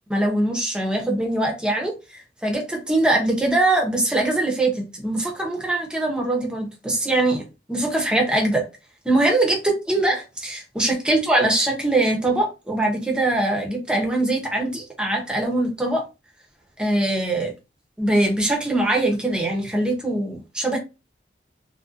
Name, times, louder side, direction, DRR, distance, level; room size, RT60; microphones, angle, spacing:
voice 1, 0.1-8.6 9.0-16.0 16.8-17.5 18.0-20.8, right 2 dB, 5° right, 0.6 m, -22 dB
2.5 x 2.1 x 2.4 m
head